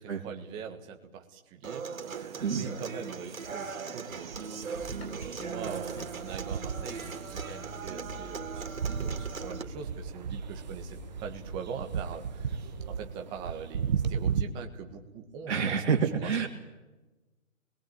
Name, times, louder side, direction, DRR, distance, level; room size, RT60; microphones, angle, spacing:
voice 1, 0.0-15.8 16.1-16.5, right 6 dB, 10° right, 4 dB, 1.4 m, -42 dB
Human voice / Acoustic guitar, 1.6-9.6, right 5 dB, 75° right, 3.1 m, -39 dB
sound 1, 2.0-14.4, right 7 dB, 30° right, 1.0 m, -37 dB
Motor vehicle (road) / Engine starting, 4.8-13.1, left 1 dB, 50° left, 6.8 m, -47 dB
voice 2, 15.5-16.5, right 6 dB, 55° right, 1 dB, 2.9 m, -27 dB
27.5 x 22.0 x 8.9 m, 1.2 s
hypercardioid pair, 165°, 41 cm